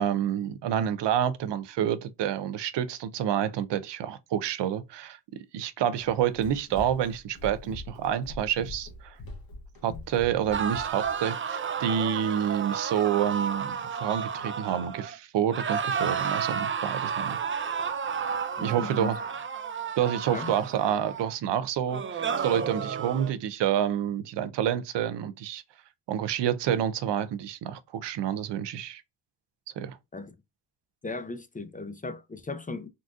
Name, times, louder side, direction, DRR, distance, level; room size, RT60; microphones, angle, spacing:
voice 1, 0.0-5.2 5.5-9.2 9.8-17.4 18.6-19.2 20.0-25.6 26.1-29.0 29.8-30.0, right 9 dB, 80° right, 0.6 m, -28 dB
Run, 5.9-11.2, left 2 dB, 60° left, 1.4 m, -43 dB
sound 1, 10.5-15.2 15.5-21.3 21.9-23.3, right 6 dB, 30° right, 0.5 m, -32 dB
voice 2, 18.6-19.1 20.3-20.5 30.1-30.3 31.0-32.9, left 3 dB, 20° left, 0.5 m, -37 dB
3.9 x 2.4 x 2.3 m
cardioid pair, 75°, 41 cm